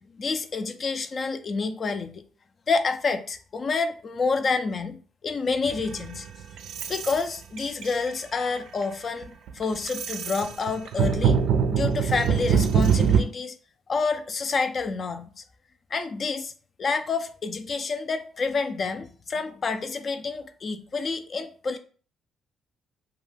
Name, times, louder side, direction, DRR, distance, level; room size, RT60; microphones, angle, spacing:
voice 1, 0.2-2.2 2.7-6.3 6.9-11.4 11.7-13.5 13.9-15.3 15.9-16.5 16.8-21.8, left 4 dB, 45° left, 0.4 m, -28 dB
sound 1, 5.6-7.2 7.6-8.1 8.6-8.8 9.2-13.2, right 7 dB, 85° right, 0.4 m, -23 dB
2.4 x 2.3 x 3.2 m
cardioid pair, 90°, 0 cm